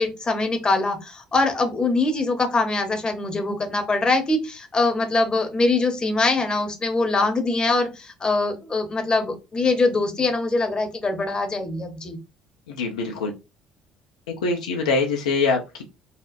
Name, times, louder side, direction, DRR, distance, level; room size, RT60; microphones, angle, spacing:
voice 1, 0.0-12.2, left 3 dB, 25° left, 5 dB, 0.8 m, -23 dB
voice 2, 12.7-13.3 14.4-15.8, left 4 dB, 75° left, 1 dB, 0.5 m, -23 dB
4.1 x 2.0 x 2.5 m, 0.26 s
figure-of-eight pair, 55°, 3 cm